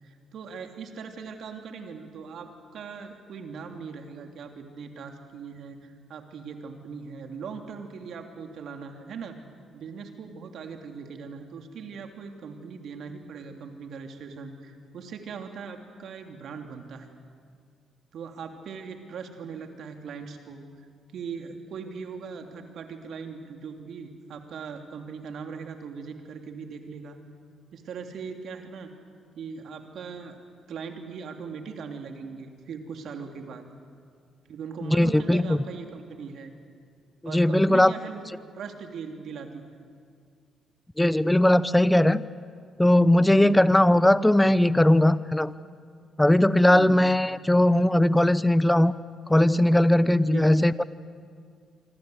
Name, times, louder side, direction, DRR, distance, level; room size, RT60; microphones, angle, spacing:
voice 1, 0.0-9.4 9.7-17.1 18.1-20.6 21.1-27.2 27.7-28.9 29.3-30.4 30.7-33.6 34.5-36.5 37.2-39.6 43.3-43.7 46.7-47.1 50.1-50.5, right 5 dB, 65° right, 4 dB, 3.0 m, -40 dB
voice 2, 34.9-35.6 37.3-37.9 41.0-42.2 42.8-45.5 46.2-48.9 49.3-50.8, left 1 dB, 10° left, 16 dB, 0.9 m, -19 dB
26.5 x 25.0 x 8.0 m, 2.2 s
hypercardioid pair, 55°, 0 cm